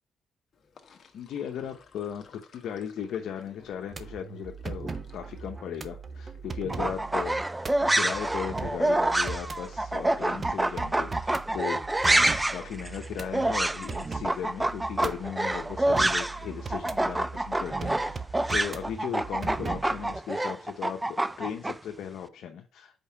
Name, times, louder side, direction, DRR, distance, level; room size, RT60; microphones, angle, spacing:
Sink (filling or washing), 0.5-6.8, left 5 dB, 50° left, 1.2 m, -56 dB
voice 1, 1.1-7.4 7.9-18.2 18.5-23.0, left 8 dB, 75° left, 3 dB, 0.9 m, -37 dB
sound 1, 3.9-20.2, right 4 dB, 35° right, 0.7 m, -39 dB
sound 2, 6.7-16.5 16.7-21.7, right 1 dB, 10° right, 0.4 m, -27 dB
5.4 x 4.7 x 5.6 m, 0.32 s
cardioid pair, 90°, 0 cm